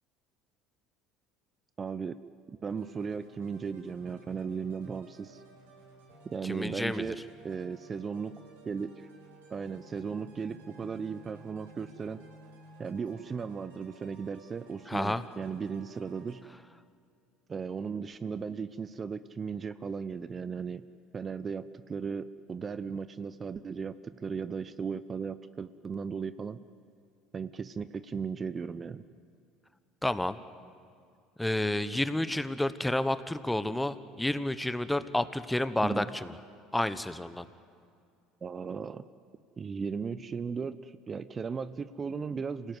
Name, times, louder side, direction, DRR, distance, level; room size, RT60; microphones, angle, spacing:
voice 1, 1.8-2.2 2.6-5.4 6.2-7.2 7.4-9.1 9.5-12.2 12.8-16.4 17.5-20.8 21.1-26.6 27.3-29.0 35.8-36.1 38.4-39.0 39.6-42.8, right 5 dB, 30° right, 14 dB, 0.8 m, -36 dB
sound 1, 2.7-16.4, right 2 dB, 85° right, 4.4 m, -55 dB
voice 2, 6.4-7.1 14.9-15.2 30.0-30.4 31.4-36.4 36.7-37.5, left 1 dB, 5° left, 13 dB, 1.1 m, -30 dB
27.0 x 17.5 x 9.6 m, 2.3 s
hypercardioid pair, 75°, 0 cm